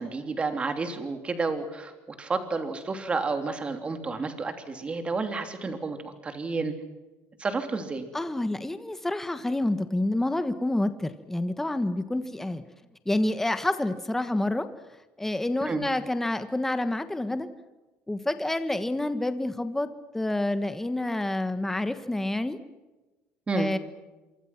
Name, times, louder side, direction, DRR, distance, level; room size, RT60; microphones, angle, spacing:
voice 1, 0.0-1.9 2.2-6.7 7.4-8.1 15.6-15.9 23.5-23.7, right 3 dB, 20° right, 7 dB, 3.2 m, -30 dB
voice 2, 8.1-12.6 13.0-14.7 15.2-17.5 18.1-22.6 23.5-23.8, left 1 dB, 5° left, 10 dB, 1.4 m, -28 dB
27.5 x 24.5 x 6.0 m, 1.1 s
cardioid pair, 145°, 5 cm